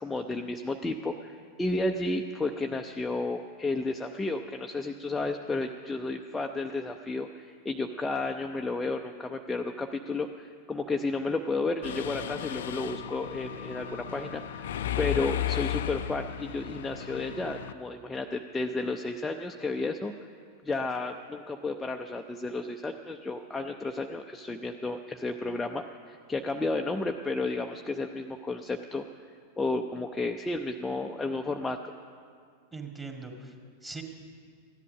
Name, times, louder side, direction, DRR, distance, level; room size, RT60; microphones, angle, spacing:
voice 1, 0.0-14.7 15.0-20.1 20.6-29.0 29.6-31.9, left 3 dB, 10° left, 3 dB, 0.5 m, -32 dB
Mechanisms, 11.8-17.7, left 11 dB, 60° left, 0.5 m, -34 dB
voice 2, 32.7-34.0, right 4 dB, 15° right, 2 dB, 1.9 m, -41 dB
15.5 x 11.0 x 6.4 m, 2.1 s
figure-of-eight pair, 90°, 0 cm